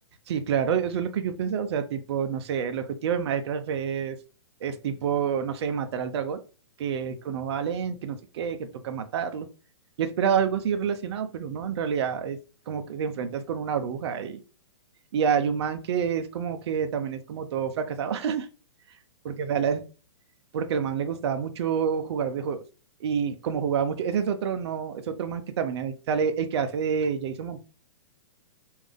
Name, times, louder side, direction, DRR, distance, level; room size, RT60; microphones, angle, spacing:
voice 1, 0.3-4.2 4.6-6.4 6.8-9.5 10.0-12.4 12.7-14.4 15.1-18.5 19.2-19.8 20.5-22.6 23.0-27.6, right 7 dB, 60° right, 8 dB, 0.6 m, -28 dB
3.4 x 2.7 x 3.6 m, 0.34 s
hypercardioid pair, 130°, 15 cm